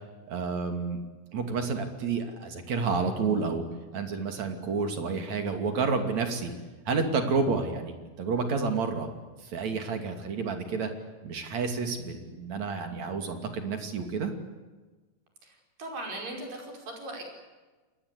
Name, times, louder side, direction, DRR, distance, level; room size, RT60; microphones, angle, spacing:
voice 1, 0.3-1.0 1.3-3.7 3.9-6.5 6.9-9.1 9.4-10.9 11.2-14.3, right 4 dB, 55° right, 6 dB, 3.8 m, -30 dB
voice 2, 15.4-17.2, right 2 dB, 75° right, 2 dB, 7.0 m, -39 dB
28.0 x 20.5 x 8.4 m, 1.3 s
omnidirectional pair, 4.0 m